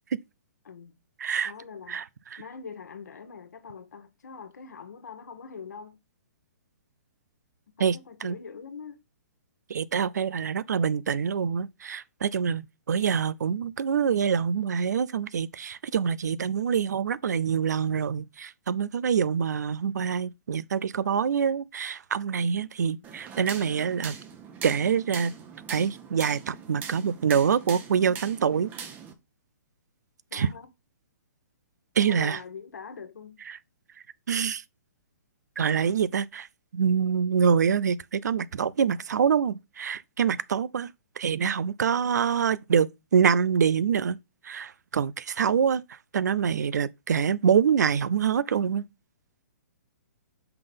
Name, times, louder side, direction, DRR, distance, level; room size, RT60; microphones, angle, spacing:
voice 1, 0.6-1.0 1.4-2.0 2.4-6.0 7.7-9.0 22.9-23.0 30.3-30.7 32.0-33.4, left 5 dB, 80° left, 1.5 m, -43 dB
voice 2, 1.2-1.5 1.9-2.0 2.3-2.4 7.8-8.4 9.7-24.2 24.6-25.3 25.7-28.7 30.3-30.5 32.0-32.4 33.5-33.6 34.3-34.6 35.6-36.5 36.7-44.2 44.4-45.8 46.1-48.8, right 7 dB, 75° right, 0.5 m, -25 dB
sound 1, 23.0-29.1, right 6 dB, 20° right, 0.9 m, -42 dB
5.6 x 3.9 x 5.2 m
hypercardioid pair, 150°, 9 cm